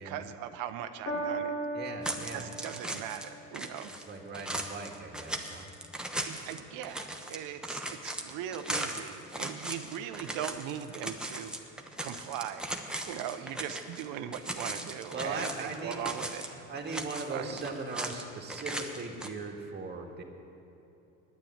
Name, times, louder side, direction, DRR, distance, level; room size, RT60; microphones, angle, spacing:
voice 1, 0.0-1.5 2.1-3.9 6.2-11.5 12.0-12.7 13.0-16.5 17.3-17.6, right 10 dB, 60° right, 10 dB, 0.8 m, -39 dB
Piano, 1.0-7.6 8.4-8.5, right 2 dB, 70° left, 3.3 m, -41 dB
voice 2, 1.7-2.5 4.1-5.7 9.2-9.3 15.1-16.0 16.5-20.2, right 4 dB, 30° right, 1 dB, 1.9 m, -39 dB
sound 1, 2.0-3.3 3.5-14.1 14.3-16.5 16.8-18.2 18.5-19.3, right 1 dB, ahead, 1.0 m, -38 dB
9.7 x 9.0 x 8.7 m, 2.9 s
supercardioid pair, 90°, 36 cm